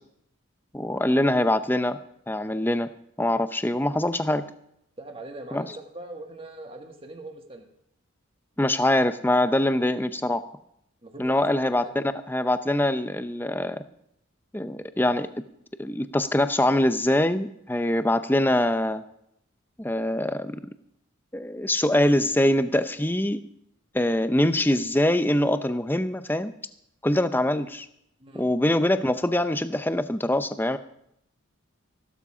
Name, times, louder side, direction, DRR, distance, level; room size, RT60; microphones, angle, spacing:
voice 1, 0.7-2.0 2.3-2.9 3.2-4.5 5.5-5.7 8.6-10.5 11.2-13.8 14.5-15.3 15.8-19.0 19.8-20.6 21.3-23.4 23.9-26.5 27.0-27.9 28.3-30.8, left 1 dB, 10° left, 11 dB, 0.6 m, -23 dB
voice 2, 5.0-7.7 11.0-11.9 28.2-28.5, right 2 dB, 25° right, 4 dB, 1.7 m, -42 dB
15.5 x 12.5 x 4.9 m, 0.75 s
head